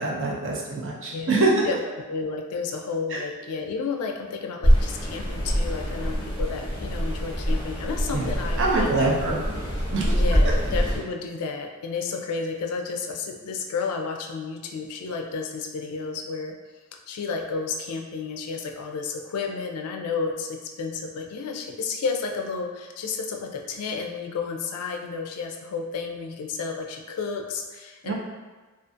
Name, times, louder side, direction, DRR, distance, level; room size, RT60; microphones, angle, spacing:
voice 1, 0.0-1.6 3.1-3.2 8.1-8.3 8.6-9.4 9.9-10.1 28.0-28.1, right 3 dB, 55° right, -3 dB, 0.5 m, -24 dB
voice 2, 1.1-1.8 2.1-9.5 10.1-16.5 17.1-28.1, left 5 dB, 85° left, 2 dB, 0.3 m, -32 dB
sound 1, 4.6-11.0, equal, 25° left, 0.6 m, -24 dB
2.5 x 2.4 x 2.5 m, 1.3 s
head